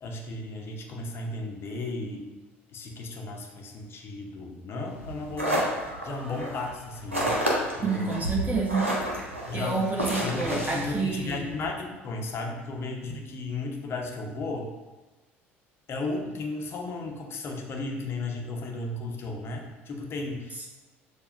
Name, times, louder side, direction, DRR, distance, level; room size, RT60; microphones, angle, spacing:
voice 1, 0.0-2.3 2.7-7.4 7.7-8.3 9.5-9.9 10.2-14.7 15.9-20.5, left 2 dB, 35° left, 2 dB, 0.7 m, -34 dB
sound 1, 4.9-11.7, equal, 90° right, 0.6 m, -31 dB
voice 2, 7.8-8.8 9.5-11.4, right 4 dB, 25° right, -2 dB, 1.0 m, -28 dB
6.7 x 2.2 x 2.5 m, 1.1 s
figure-of-eight pair, 60°, 7 cm